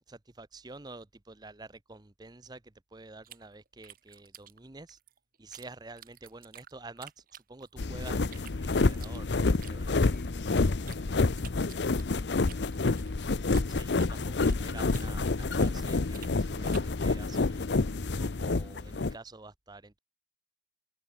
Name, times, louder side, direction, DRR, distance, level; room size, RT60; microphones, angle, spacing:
voice 1, 0.1-2.6 2.9-5.0 5.4-7.2 7.5-10.0 13.8-14.3 14.6-17.6 18.2-20.0, right 3 dB, 25° right, 0.8 m, -48 dB
sound 1, 3.2-5.7 6.0-7.9 8.2-11.0 11.4-14.7 14.9-17.0, right 10 dB, 55° right, 3.1 m, -52 dB
sound 2, 7.8-19.1, left 3 dB, 85° left, 0.8 m, -28 dB
voice 2, 10.0-12.7, left 1 dB, 55° left, 6.1 m, -51 dB
head